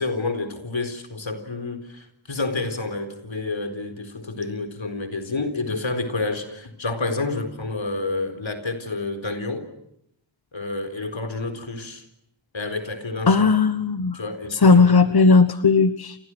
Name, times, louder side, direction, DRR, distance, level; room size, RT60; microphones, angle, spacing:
voice 1, 0.0-9.7 10.5-12.0 12.5-13.5 14.1-15.2, left 3 dB, 80° left, 8 dB, 4.2 m, -29 dB
voice 2, 13.3-14.2 14.5-16.2, left 4 dB, 55° left, 11 dB, 1.2 m, -16 dB
29.5 x 29.0 x 6.2 m, 0.75 s
wide cardioid pair, 55°, 45 cm